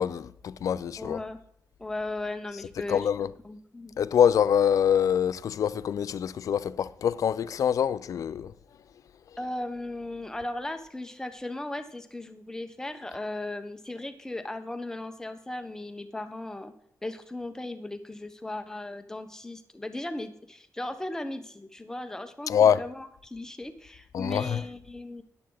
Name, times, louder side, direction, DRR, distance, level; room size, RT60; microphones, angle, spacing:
voice 1, 0.0-1.2 2.9-3.3 4.0-8.5 22.5-22.8 24.1-24.6, left 8 dB, 65° left, 0.5 m, -25 dB
voice 2, 1.0-1.4 1.8-3.1 3.4-4.0 9.4-16.7 17.0-25.2, left 2 dB, 10° left, 1.1 m, -37 dB
13.0 x 11.0 x 4.0 m
wide cardioid pair, 155°, 6 cm